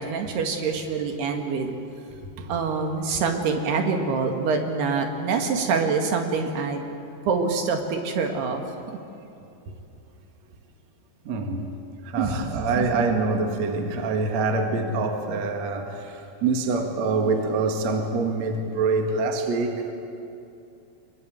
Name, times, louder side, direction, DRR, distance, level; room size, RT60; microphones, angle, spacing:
voice 1, 0.0-1.7 2.5-6.8 7.3-8.6 8.9-9.0 12.2-12.9, right 4 dB, 65° right, 4 dB, 3.6 m, -25 dB
voice 2, 2.2-2.5 11.2-11.7 12.0-19.9, right 3 dB, 50° right, 4 dB, 2.4 m, -25 dB
25.5 x 22.0 x 9.2 m, 2.8 s
omnidirectional pair, 5.4 m